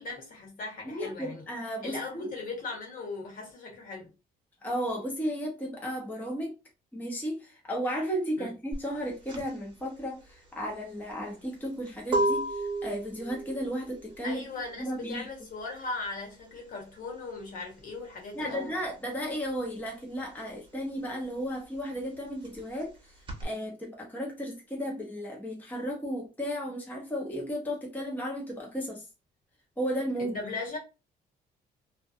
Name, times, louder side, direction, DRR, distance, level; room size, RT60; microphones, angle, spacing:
voice 1, 0.0-1.4 1.8-4.1 8.4-8.5 14.2-18.8 30.2-30.8, left 3 dB, 55° left, 1.2 m, -38 dB
voice 2, 0.8-2.3 4.6-6.5 6.9-14.4 14.8-15.3 18.3-29.1 29.8-30.4, equal, 10° left, 0.7 m, -34 dB
sound 1, 8.7-19.0 19.2-23.4, right 1 dB, 30° right, 0.9 m, -34 dB
2.5 x 2.2 x 2.4 m
cardioid pair, 110°, 17 cm